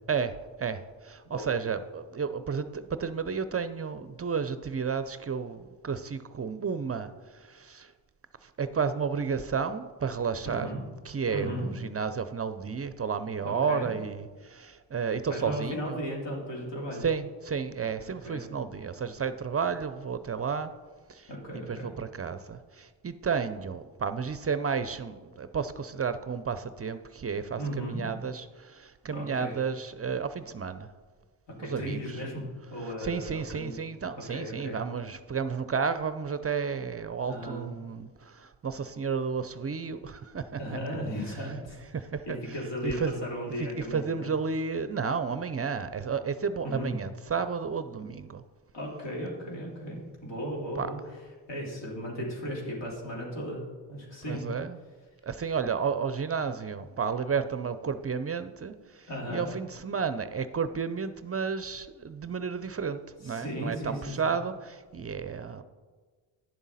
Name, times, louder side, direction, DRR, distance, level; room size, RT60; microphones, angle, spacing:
voice 1, 0.1-7.9 8.4-16.0 17.0-20.7 21.1-21.3 21.7-30.9 31.6-32.2 32.8-40.8 41.9-43.1 43.6-48.4 50.8-50.9 54.3-54.8 55.2-65.6, right 6 dB, 30° right, 12 dB, 0.5 m, -32 dB
voice 2, 10.4-10.8 11.3-11.7 13.4-13.9 15.3-17.0 18.2-18.5 21.3-21.9 27.6-28.0 29.1-29.6 31.6-32.4 32.7-33.8 34.3-34.8 37.3-37.7 40.6-41.8 42.2-44.3 46.6-46.9 48.7-51.0 51.5-54.5 59.1-59.5 63.2-64.4, equal, 60° left, -3 dB, 3.2 m, -36 dB
10.5 x 7.1 x 4.1 m, 1.4 s
supercardioid pair, 60°, 48 cm